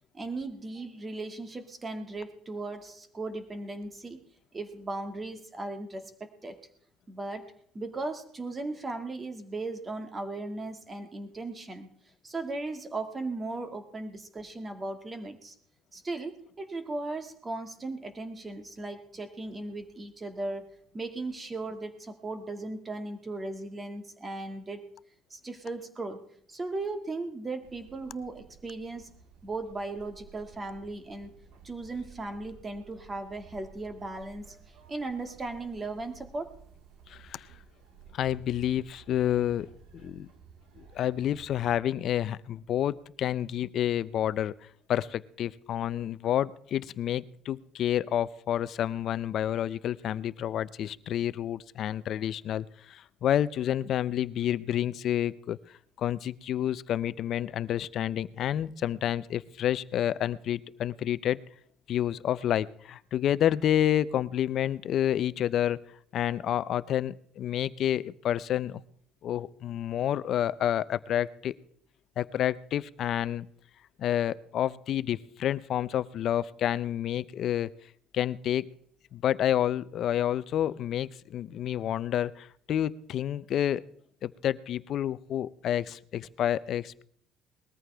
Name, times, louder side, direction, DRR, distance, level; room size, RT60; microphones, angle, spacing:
voice 1, 0.1-4.2 4.5-6.6 7.1-7.5 7.7-11.9 12.2-15.5 15.9-24.9 25.3-26.2 26.5-29.1 29.4-31.3 31.6-34.6 34.9-36.6, right 2 dB, 20° right, 6 dB, 1.9 m, -37 dB
sound 1, 27.6-41.8, right 6 dB, 70° right, 1.6 m, -54 dB
voice 2, 37.1-37.5 38.1-39.7 39.9-40.3 40.8-44.5 44.9-55.6 56.0-61.4 61.9-65.8 66.1-68.8 69.2-71.5 72.2-73.5 74.0-77.7 78.1-78.7 79.1-83.8 84.2-87.0, left 11 dB, 55° left, 17 dB, 0.5 m, -29 dB
20.5 x 14.0 x 3.4 m, 0.62 s
cardioid pair, 125°, 0 cm